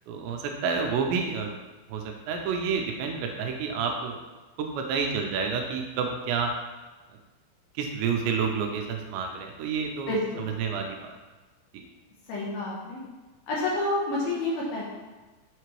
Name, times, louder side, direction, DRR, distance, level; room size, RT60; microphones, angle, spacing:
voice 1, 0.1-1.5 1.9-4.2 4.6-6.5 7.7-11.2 11.7-11.8, right 5 dB, 85° right, 2 dB, 2.8 m, -29 dB
voice 2, 10.1-10.5 12.3-13.0 13.5-14.8, left 2 dB, 70° left, -5 dB, 2.6 m, -29 dB
6.8 x 6.6 x 3.1 m, 1.2 s
omnidirectional pair, 5.3 m